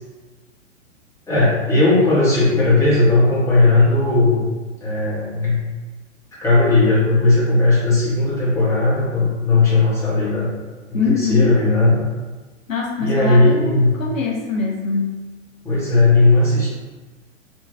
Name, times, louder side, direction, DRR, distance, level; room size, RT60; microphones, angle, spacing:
voice 1, 1.3-4.5 4.8-5.6 6.4-10.5 11.0-12.0 13.0-13.9 15.6-16.7, left 2 dB, 5° left, -9 dB, 1.2 m, -16 dB
voice 2, 10.9-11.5 12.7-15.2, left 4 dB, 85° left, -1 dB, 0.7 m, -23 dB
3.4 x 2.9 x 2.7 m, 1.3 s
figure-of-eight pair, 115°, 39 cm